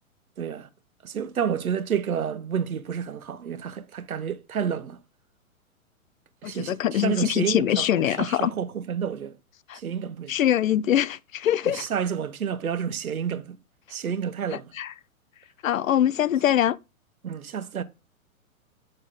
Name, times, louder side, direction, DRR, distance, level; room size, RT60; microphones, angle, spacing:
voice 1, 0.4-0.7 1.0-5.0 6.4-9.4 9.7-10.4 11.6-13.6 13.9-14.7 17.2-17.8, right 7 dB, 75° right, 1.1 m, -30 dB
voice 2, 6.4-8.5 9.7-9.8 10.3-11.9 14.8-14.9 15.6-16.8, left 11 dB, 70° left, 0.6 m, -23 dB
7.9 x 6.5 x 3.7 m
hypercardioid pair, 120°, 42 cm